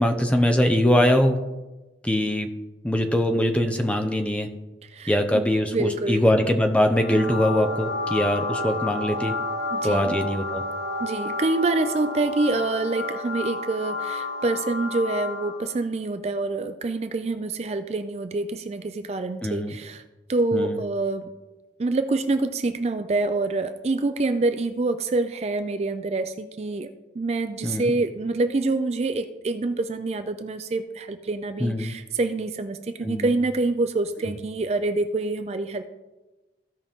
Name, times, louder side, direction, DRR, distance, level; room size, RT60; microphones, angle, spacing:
voice 1, 0.0-1.4 2.0-2.5 2.8-4.5 5.1-9.3 9.8-10.6 19.4-19.7 20.5-20.8 27.6-27.9 31.6-31.9 33.0-33.3, equal, 5° left, 5 dB, 0.7 m, -22 dB
voice 2, 4.8-5.5 5.7-6.3 9.7-10.2 11.0-20.0 20.3-21.3 21.8-35.8, right 2 dB, 35° right, 9 dB, 0.4 m, -26 dB
sound 1, 6.9-15.7, left 2 dB, 70° right, 1.2 m, -31 dB
15.5 x 5.4 x 3.6 m, 1.1 s
head